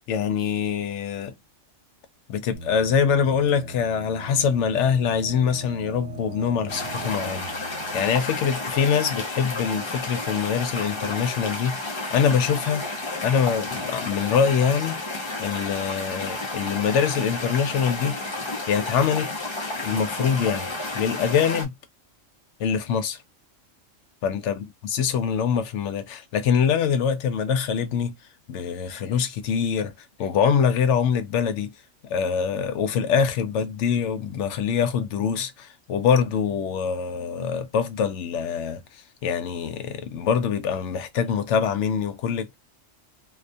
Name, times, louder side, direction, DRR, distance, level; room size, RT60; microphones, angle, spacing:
voice 1, 0.1-1.3 2.3-7.5 7.9-12.9 13.2-15.0 15.4-18.2 18.7-19.4 19.8-21.7 22.6-23.2 24.2-28.1 28.5-29.9 30.2-31.7 32.0-38.8 39.2-42.5, left 7 dB, 75° left, 0.9 m, -24 dB
sound 1, 2.5-9.1, right 4 dB, 60° right, 0.7 m, -41 dB
sound 2, 6.7-21.6, left 2 dB, 30° left, 0.5 m, -31 dB
2.4 x 2.2 x 2.5 m
omnidirectional pair, 1.3 m